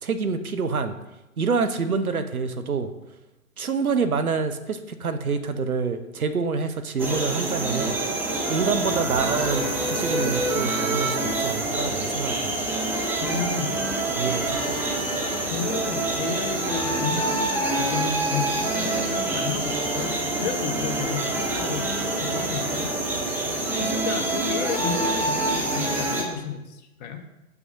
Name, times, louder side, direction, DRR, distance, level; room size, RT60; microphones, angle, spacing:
voice 1, 0.0-0.9 1.4-2.9 3.6-8.0 8.5-12.6 14.2-14.8, right 5 dB, 85° right, 9 dB, 1.0 m, -27 dB
sound 1, 7.0-26.2, right 2 dB, 5° right, 0.7 m, -26 dB
voice 2, 13.2-13.9 15.5-23.0 23.8-27.2, left 6 dB, 30° left, 5 dB, 1.0 m, -32 dB
7.7 x 6.0 x 5.5 m, 0.97 s
figure-of-eight pair, 130°, 42 cm